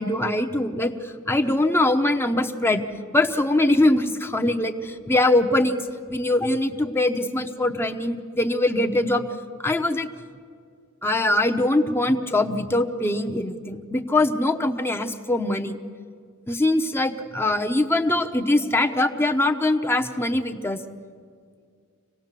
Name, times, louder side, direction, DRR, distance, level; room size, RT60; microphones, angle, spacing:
voice 1, 0.0-2.8 3.1-5.8 6.1-9.3 9.6-10.1 11.0-15.8 16.5-20.8, left 1 dB, 10° left, 5 dB, 0.9 m, -22 dB
26.5 x 18.0 x 7.5 m, 2.2 s
head